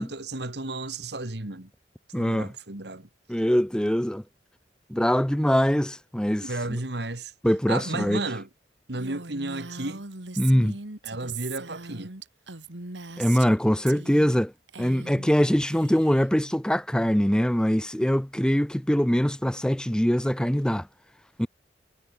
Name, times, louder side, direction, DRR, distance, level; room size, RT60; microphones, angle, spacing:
voice 1, 0.0-1.7 2.2-3.1 6.4-7.3 7.7-8.5 8.9-10.0 11.0-12.1, right 2 dB, 65° right, 2.3 m, -33 dB
voice 2, 2.1-2.5 3.3-4.2 4.9-6.8 7.4-8.2 10.4-10.8 13.2-14.5 14.8-20.9 21.4-21.5, equal, 5° left, 0.7 m, -23 dB
Female speech woman speaking, 9.0-13.6 13.9-14.4 14.7-15.3 15.6-16.3, right 4 dB, 85° right, 2.7 m, -40 dB
head